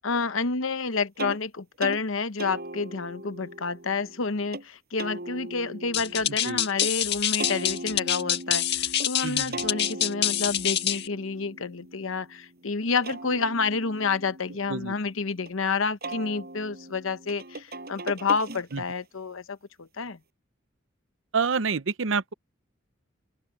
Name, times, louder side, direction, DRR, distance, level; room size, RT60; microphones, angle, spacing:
voice 1, 0.0-20.2, left 4 dB, 75° left, 0.9 m, -29 dB
sound 1, 1.2-1.4 1.8-2.0 2.4-4.6 5.0-6.9 7.4-9.1 9.5-12.4 12.8-15.5 16.0-19.0, right 2 dB, 50° right, 5.5 m, -39 dB
sound 2, 5.9-11.1, left 11 dB, 55° left, 1.8 m, -26 dB
voice 2, 21.3-22.3, right 5 dB, 70° right, 0.8 m, -27 dB
open air
head